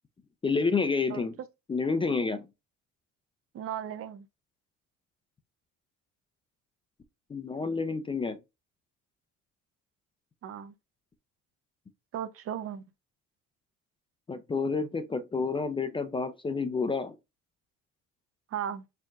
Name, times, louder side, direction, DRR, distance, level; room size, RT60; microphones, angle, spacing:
voice 1, 0.4-1.4 1.7-2.5 7.3-8.4 14.3-17.2, left 4 dB, 15° left, 0.4 m, -29 dB
voice 2, 3.5-4.3 10.4-10.7 12.1-12.8 18.5-18.8, right 9 dB, 50° right, 0.6 m, -36 dB
4.5 x 3.5 x 2.4 m
cardioid pair, 105°, 30 cm